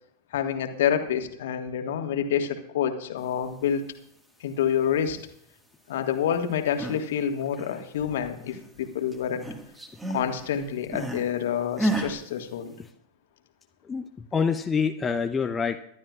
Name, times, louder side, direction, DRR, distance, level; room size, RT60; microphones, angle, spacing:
voice 1, 0.3-3.8 4.4-5.2 5.9-9.5 10.1-12.7, left 8 dB, 55° left, 5 dB, 1.7 m, -27 dB
sound 1, 6.5-7.1 7.4-8.8 9.1-11.3 11.8-12.2, right 1 dB, 10° right, 1.8 m, -31 dB
voice 2, 13.9-15.8, left 6 dB, 15° left, 6 dB, 0.7 m, -26 dB
24.5 x 12.0 x 2.5 m, 0.72 s
figure-of-eight pair, 90°, 0 cm